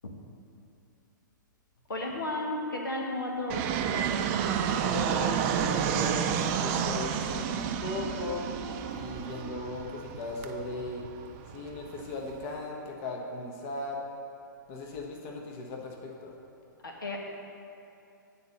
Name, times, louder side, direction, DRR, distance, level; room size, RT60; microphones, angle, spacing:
voice 1, 1.9-3.6 16.8-17.2, left 2 dB, 85° left, 0 dB, 1.3 m, -33 dB
Fixed-wing aircraft airplane, 3.5-12.5, right 8 dB, 35° right, 0.5 m, -31 dB
voice 2, 4.8-8.6 8.9-11.1 11.5-14.0 14.7-16.3, left 3 dB, 40° left, 0 dB, 1.1 m, -38 dB
9.2 x 4.2 x 6.5 m, 2.6 s
hypercardioid pair, 125°, 11 cm